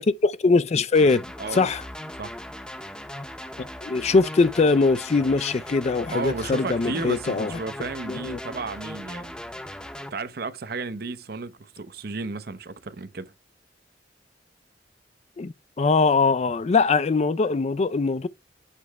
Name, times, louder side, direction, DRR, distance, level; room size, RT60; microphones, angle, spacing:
voice 1, 0.0-1.2 1.5-1.8 3.8-7.5 8.1-8.4 15.4-18.3, left 4 dB, 40° left, 0.4 m, -21 dB
sound 1, 0.9-10.1, left 1 dB, 5° left, 0.7 m, -38 dB
voice 2, 6.1-9.4 10.1-13.3, right 3 dB, 60° right, 0.7 m, -33 dB
8.4 x 3.3 x 4.6 m
head